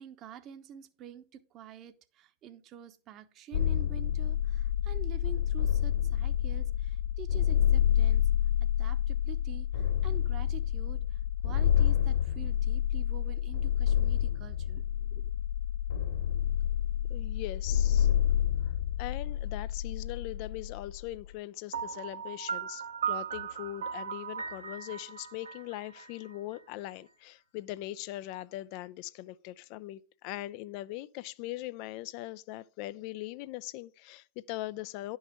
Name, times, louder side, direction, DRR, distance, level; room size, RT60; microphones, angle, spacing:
voice 1, 0.0-8.3 8.6-15.3, right 9 dB, 35° right, 0.9 m, -48 dB
sound 1, 3.5-21.2, left 10 dB, 60° left, 1.8 m, -28 dB
voice 2, 17.1-18.1 18.6-18.7 19.0-35.2, left 16 dB, 45° left, 0.4 m, -41 dB
Piano, 21.7-26.6, right 7 dB, 70° right, 1.0 m, -37 dB
11.0 x 5.5 x 4.9 m
figure-of-eight pair, 90°, 0 cm